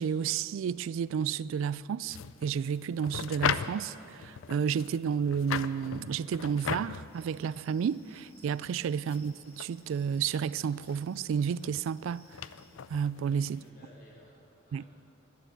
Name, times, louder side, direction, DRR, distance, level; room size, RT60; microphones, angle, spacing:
voice 1, 0.0-12.4 12.9-13.6 14.7-14.8, right 7 dB, 70° right, 0.3 m, -31 dB
sound 1, 2.1-13.7, left 7 dB, 70° left, 0.4 m, -39 dB
Cricket, 7.1-12.7, right 1 dB, 10° left, 2.3 m, -62 dB
voice 2, 13.2-14.9, left 1 dB, 50° left, 3.8 m, -57 dB
11.5 x 11.5 x 8.0 m
head